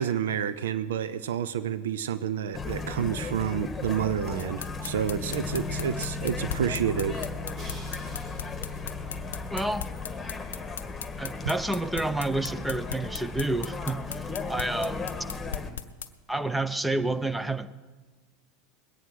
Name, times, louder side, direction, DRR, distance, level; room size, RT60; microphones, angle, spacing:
voice 1, 0.0-7.3, right 8 dB, 75° right, 14 dB, 0.6 m, -29 dB
sound 1, 2.5-15.7, left 3 dB, 20° left, 1.5 m, -35 dB
sound 2, 4.4-16.1, left 8 dB, 80° left, 0.6 m, -37 dB
Crash cymbal, 7.5-10.5, right 1 dB, 40° right, 4.7 m, -50 dB
voice 2, 9.5-9.9 11.2-15.1 16.3-17.7, right 2 dB, 5° right, 11 dB, 0.8 m, -29 dB
21.0 x 9.1 x 6.3 m, 1.3 s
hypercardioid pair, 85°, 0 cm